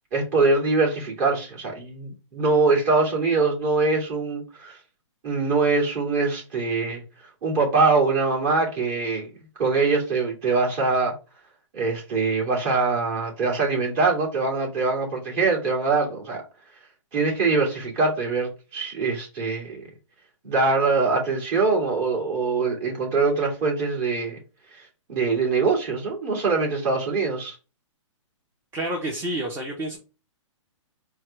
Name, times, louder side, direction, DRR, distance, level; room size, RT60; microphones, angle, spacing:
voice 1, 0.1-4.8 5.2-7.0 7.4-9.3 9.6-11.1 11.7-16.4 17.1-19.8 20.4-24.4 24.7-27.6, right 4 dB, 35° right, -2 dB, 2.4 m, -23 dB
voice 2, 28.7-30.0, right 1 dB, 15° right, -1 dB, 0.8 m, -29 dB
4.5 x 2.3 x 4.7 m, 0.32 s
hypercardioid pair, 140°, 17 cm